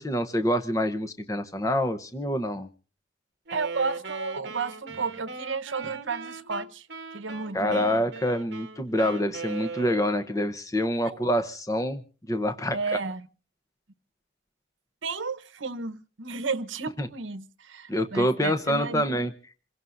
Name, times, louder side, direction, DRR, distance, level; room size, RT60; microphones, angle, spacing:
voice 1, 0.0-2.7 7.5-12.0 12.3-12.8 17.0-17.1 17.9-19.3, equal, 15° left, 0.8 m, -26 dB
Wind instrument woodwind instrument, 3.5-10.4, right 4 dB, 60° right, 1.2 m, -39 dB
voice 2, 3.5-6.9 7.1-7.9 12.7-13.3 15.0-19.2, right 4 dB, 75° right, 1.0 m, -32 dB
27.5 x 17.0 x 2.6 m
head